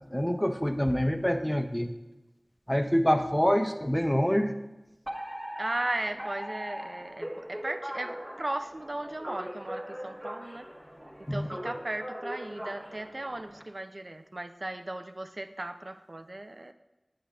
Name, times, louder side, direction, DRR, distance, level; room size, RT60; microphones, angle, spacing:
voice 1, 0.1-1.9 2.7-4.5 11.3-11.5, equal, 5° left, 7 dB, 0.5 m, -26 dB
Alarm, 5.1-13.6, equal, 25° right, 1.2 m, -40 dB
voice 2, 5.6-10.7 11.2-16.7, right 1 dB, 60° right, 8 dB, 0.3 m, -36 dB
8.8 x 8.3 x 2.3 m, 1.1 s
wide cardioid pair, 45°, 0 cm